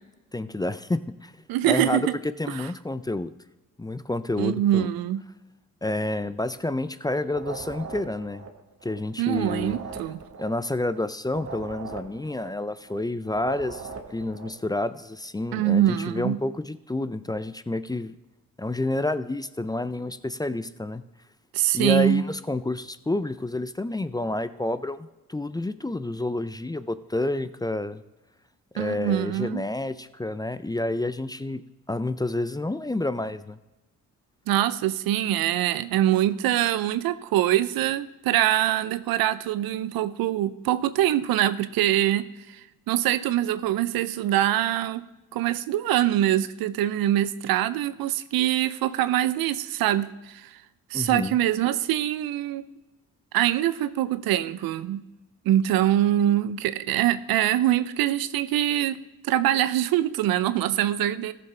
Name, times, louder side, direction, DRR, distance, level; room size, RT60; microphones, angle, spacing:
voice 1, 0.3-1.3 1.7-2.1 2.4-3.3 3.8-4.9 5.8-8.4 8.8-9.8 10.4-18.1 18.6-21.0 21.7-28.0 28.7-31.6 31.9-33.6 50.9-51.4, left 2 dB, 10° left, 14 dB, 0.4 m, -29 dB
voice 2, 1.5-2.1 2.5-2.7 4.4-5.2 9.2-10.2 15.5-16.4 21.5-22.3 28.8-29.6 34.5-42.6 42.9-45.0 45.3-50.6 50.9-52.6 53.3-55.0 55.4-59.0 59.2-61.3, right 12 dB, 85° right, 15 dB, 0.6 m, -24 dB
sound 1, 7.2-9.0 9.2-13.0 13.2-14.6, right 5 dB, 45° right, 1.3 m, -40 dB
14.5 x 6.8 x 3.3 m, 1.1 s
supercardioid pair, 55°, 35 cm